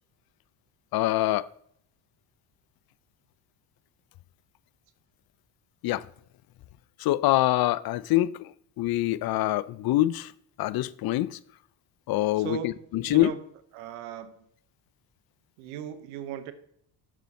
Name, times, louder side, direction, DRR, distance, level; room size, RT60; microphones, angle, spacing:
voice 1, 0.9-1.5 5.8-6.0 7.0-8.5 8.8-10.3 10.6-11.4 12.1-13.3, left 15 dB, 50° left, 0.5 m, -25 dB
voice 2, 12.3-13.5 13.7-14.4 15.6-16.5, right 11 dB, 85° right, 0.9 m, -38 dB
7.2 x 7.0 x 4.1 m
supercardioid pair, 75°, 49 cm